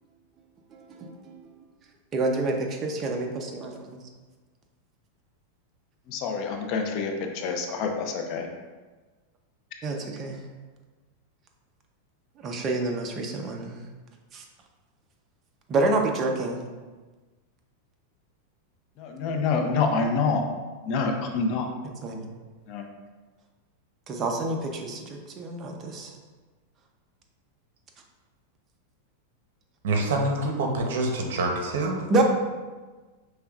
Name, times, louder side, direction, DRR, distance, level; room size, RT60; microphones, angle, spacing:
voice 1, 0.7-1.4 2.1-3.7 9.8-10.4 12.4-13.8 14.3-14.4 15.7-16.6 22.0-22.3 24.1-26.1 32.1-32.2, right 2 dB, 25° right, 1 dB, 0.6 m, -28 dB
voice 2, 6.1-8.5 19.0-20.4 20.9-21.7 22.7-22.8, left 4 dB, 45° left, 3 dB, 0.5 m, -27 dB
voice 3, 29.8-32.0, right 2 dB, 75° right, 2 dB, 0.8 m, -26 dB
5.4 x 3.4 x 2.4 m, 1.3 s
supercardioid pair, 150°, 0 cm